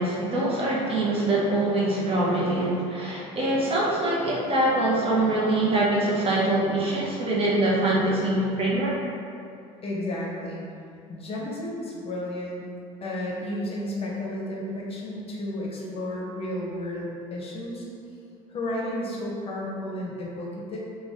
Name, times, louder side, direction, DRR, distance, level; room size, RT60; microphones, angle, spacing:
voice 1, 0.0-9.0, right 1 dB, 40° right, -5 dB, 0.7 m, -24 dB
voice 2, 9.8-10.6 11.1-12.6 13.0-17.8 18.5-20.8, left 1 dB, 40° left, -3 dB, 0.7 m, -32 dB
2.5 x 2.3 x 3.3 m, 2.5 s
supercardioid pair, 80°, 15 cm